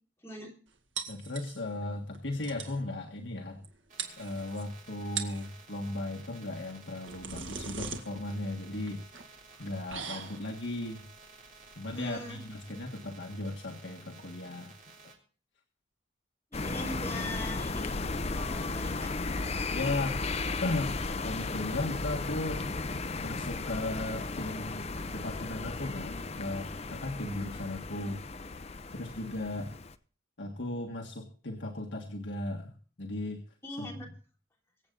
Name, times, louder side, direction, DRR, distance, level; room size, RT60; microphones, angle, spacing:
voice 1, 0.2-0.5 11.9-12.4 16.5-17.9 18.2-19.1 33.6-34.1, left 1 dB, 15° left, -1 dB, 3.2 m, -41 dB
sound 1, 1.0-1.8 2.1-2.2 2.4-2.8 3.6-3.7 4.0-4.6 5.0-5.5 6.7-13.3, right 6 dB, 80° right, 2.0 m, -41 dB
voice 2, 1.1-3.7 4.2-9.0 9.6-11.0 11.8-14.7 19.7-20.2 20.6-28.2 28.9-29.8 30.4-33.4 33.8-33.9, left 2 dB, 70° left, 1 dB, 1.7 m, -36 dB
sound 2, 3.9-15.1, right 4 dB, 45° right, 3.7 m, -54 dB
sound 3, 16.5-29.9, left 3 dB, 35° left, 0.7 m, -35 dB
24.0 x 8.0 x 3.9 m, 0.41 s
head